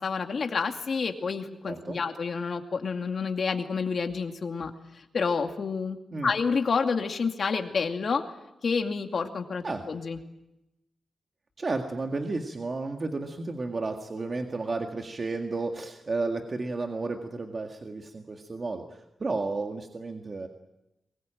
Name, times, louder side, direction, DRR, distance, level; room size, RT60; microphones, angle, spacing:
voice 1, 0.0-6.0 6.2-8.2 8.6-10.2, left 5 dB, 55° left, 5 dB, 2.4 m, -29 dB
voice 2, 1.7-2.0 6.1-6.3 9.6-9.8 11.6-18.8 19.2-20.5, right 3 dB, 35° right, 4 dB, 1.9 m, -32 dB
23.0 x 21.0 x 9.0 m, 0.91 s
wide cardioid pair, 120°, 0 cm